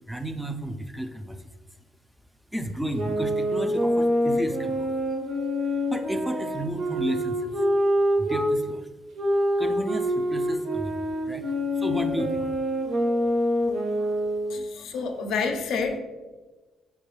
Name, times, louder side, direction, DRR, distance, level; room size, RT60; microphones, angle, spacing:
voice 1, 0.1-1.5 2.5-4.9 5.9-7.5 8.2-8.9 9.6-11.0 11.2-12.5 13.5-13.7 14.0-14.1 14.4-14.9, right 1 dB, 5° right, 6 dB, 0.3 m, -33 dB
sound 1, 2.9-8.5 9.1-14.6, equal, 65° right, 0.8 m, -26 dB
voice 2, 14.5-16.0, left 4 dB, 80° left, 4 dB, 0.4 m, -28 dB
4.6 x 2.2 x 3.1 m, 1.2 s
cardioid pair, 90°, 0 cm